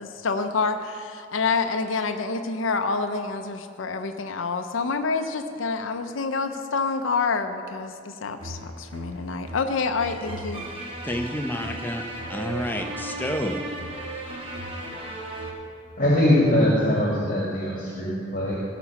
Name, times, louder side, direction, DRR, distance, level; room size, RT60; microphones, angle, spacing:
voice 1, 0.0-10.6, left 4 dB, 90° left, 6 dB, 0.6 m, -27 dB
sound 1, 8.4-15.5, right 1 dB, 30° right, 1.4 m, -36 dB
voice 2, 11.0-12.0 12.3-13.6, equal, 10° left, 4 dB, 0.6 m, -29 dB
voice 3, 16.0-18.5, left 1 dB, 45° left, -5 dB, 1.8 m, -21 dB
16.0 x 6.0 x 5.9 m, 2.4 s
head